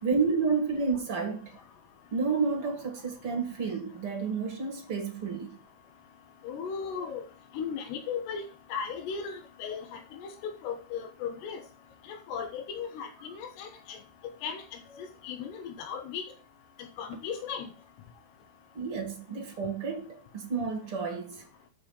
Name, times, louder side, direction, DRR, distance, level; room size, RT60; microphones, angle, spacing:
voice 1, 0.0-1.6 2.1-5.6 18.7-21.4, right 5 dB, 50° right, 1.8 m, -30 dB
voice 2, 6.4-7.3 7.5-8.4 8.7-11.6 12.1-14.0 14.4-14.6 14.9-16.2 17.0-17.7, left 6 dB, 90° left, 3.5 m, -36 dB
7.6 x 5.7 x 7.2 m
omnidirectional pair, 4.7 m